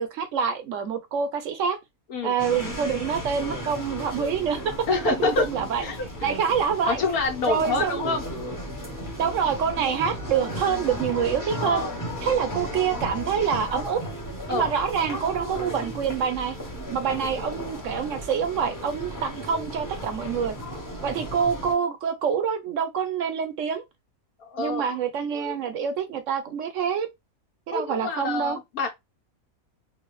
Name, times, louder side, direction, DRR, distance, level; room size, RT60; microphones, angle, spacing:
voice 1, 0.0-1.8 2.2-5.8 6.2-7.0 7.5-8.1 9.2-11.8 12.2-14.0 14.5-16.6 16.9-20.5 21.0-23.8 24.6-27.1 27.7-28.6, right 7 dB, 65° right, 0.9 m, -26 dB
sound 1, 2.4-21.7, equal, 15° left, 1.0 m, -35 dB
voice 2, 4.9-5.4 5.8-6.3 6.9-8.2 11.6-11.9 14.5-14.7 24.4-25.0 25.3-25.6 27.7-28.9, left 3 dB, 80° left, 1.6 m, -27 dB
4.0 x 2.5 x 3.1 m
omnidirectional pair, 1.5 m